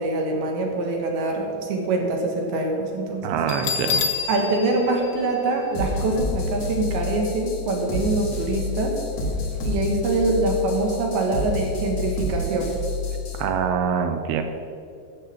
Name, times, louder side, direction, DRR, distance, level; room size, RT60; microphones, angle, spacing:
voice 1, 0.0-3.4 4.3-9.0 9.6-12.7, right 2 dB, 65° right, 1 dB, 3.0 m, -24 dB
voice 2, 3.2-4.0 13.4-14.4, right 7 dB, 90° right, 6 dB, 2.3 m, -24 dB
Bell, 3.5-6.2, left 6 dB, 90° left, 3.3 m, -28 dB
sound 1, 5.7-13.4, left 3 dB, 55° left, 1.7 m, -29 dB
10.0 x 7.4 x 7.2 m, 2.5 s
omnidirectional pair, 5.2 m